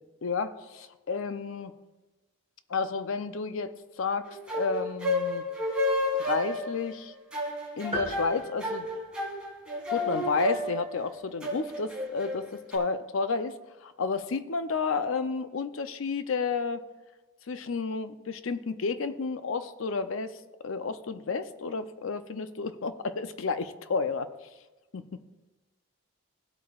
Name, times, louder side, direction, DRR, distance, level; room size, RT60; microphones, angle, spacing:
voice 1, 0.0-1.7 2.7-5.4 6.2-7.1 7.8-8.9 9.9-16.8 17.5-20.4 20.6-24.3 24.9-25.0, left 4 dB, 70° left, 11 dB, 0.5 m, -31 dB
sound 1, 4.2-12.8, left 1 dB, 5° right, 2.1 m, -31 dB
sound 2, 7.9-9.7, right 1 dB, 25° right, 1.1 m, -38 dB
16.5 x 8.4 x 2.4 m, 1.1 s
head